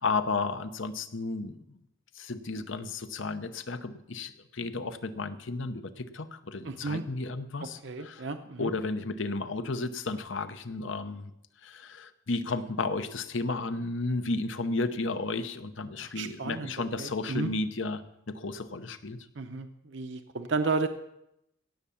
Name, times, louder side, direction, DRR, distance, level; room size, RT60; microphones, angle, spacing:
voice 1, 0.0-1.8 2.1-8.2 8.6-11.3 11.6-18.0 18.3-19.3, left 3 dB, 70° left, 11 dB, 0.9 m, -33 dB
voice 2, 6.6-7.0 7.8-8.7 16.0-16.7 17.0-17.5 19.4-20.9, right 4 dB, 60° right, 7 dB, 0.7 m, -32 dB
17.0 x 7.4 x 7.0 m, 0.81 s
head